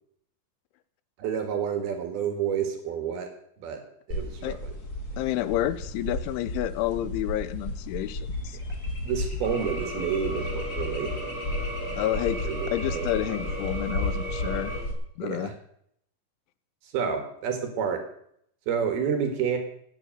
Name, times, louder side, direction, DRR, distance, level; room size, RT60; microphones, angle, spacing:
voice 1, 1.2-3.3 3.6-3.8 4.1-4.6 9.0-11.1 12.4-13.5 15.2-15.5 16.9-18.0 18.7-19.6, right 7 dB, 60° right, 6 dB, 3.2 m, -29 dB
sound 1, 4.1-14.9, left 1 dB, 35° left, 1.5 m, -33 dB
voice 2, 5.2-8.6 12.0-14.7 15.2-15.5, left 14 dB, 85° left, 15 dB, 3.1 m, -30 dB
sound 2, 9.4-14.8, right 1 dB, 20° left, 3.4 m, -36 dB
17.0 x 9.4 x 6.5 m, 0.69 s
omnidirectional pair, 5.5 m